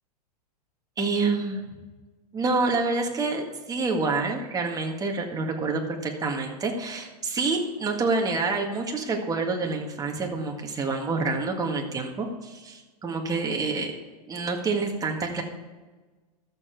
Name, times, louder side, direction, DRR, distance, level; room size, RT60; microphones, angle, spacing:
voice 1, 1.0-1.6 2.3-13.9 14.3-15.4, right 3 dB, 15° right, 1 dB, 1.8 m, -27 dB
13.0 x 7.1 x 4.6 m, 1.3 s
hypercardioid pair, 115°, 21 cm